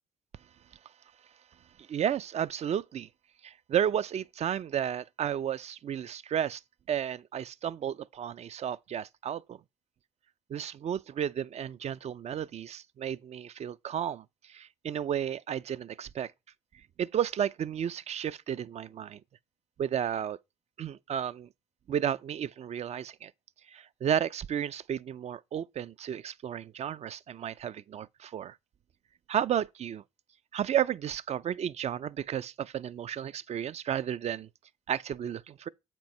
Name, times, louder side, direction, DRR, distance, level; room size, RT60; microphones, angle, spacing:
voice 1, 1.8-3.1 3.4-6.6 6.9-9.6 10.5-16.3 17.0-19.2 19.8-20.4 20.8-21.5 21.9-23.3 23.7-28.6 29.3-30.0 30.5-34.5 34.9-35.7, right 9 dB, 50° right, 0.4 m, -33 dB
7.5 x 4.5 x 5.3 m
supercardioid pair, 70°, 14 cm